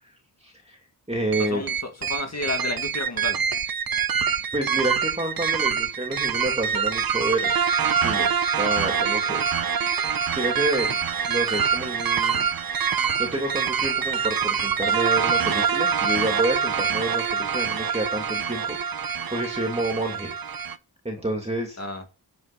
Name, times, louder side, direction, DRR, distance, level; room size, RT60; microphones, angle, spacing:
voice 1, 0.4-0.8 1.1-1.6 4.5-7.5 7.9-8.3 8.5-9.4 10.3-10.9 11.3-12.5 12.9-20.3 21.0-21.8, right 1 dB, 15° right, 2.6 m, -29 dB
sound 1, 1.3-20.8, right 7 dB, 60° right, 0.8 m, -25 dB
voice 2, 1.5-3.4 21.8-22.0, left 2 dB, 40° left, 2.2 m, -31 dB
9.7 x 7.6 x 4.2 m
wide cardioid pair, 130°, 40 cm